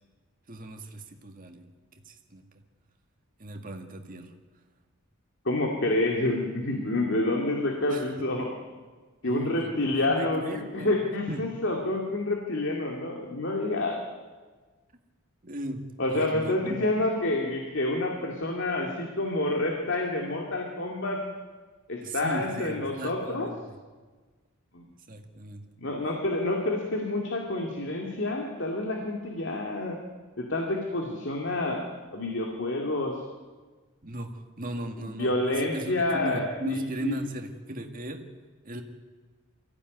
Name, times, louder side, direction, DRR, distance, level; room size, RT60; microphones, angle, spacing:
voice 1, 0.5-1.7 2.1-2.4 3.4-4.3 7.9-8.3 9.3-11.0 11.3-11.5 15.4-16.9 22.0-23.8 25.1-25.6 34.0-38.3 38.6-38.8, right 1 dB, 40° right, 4 dB, 2.0 m, -37 dB
voice 2, 5.4-8.5 9.2-14.0 16.0-21.2 21.9-23.5 24.7-24.8 25.8-30.0 30.4-31.8 32.1-33.2 35.0-37.2, left 2 dB, 60° left, 1 dB, 2.5 m, -28 dB
23.5 x 15.5 x 9.5 m, 1.4 s
head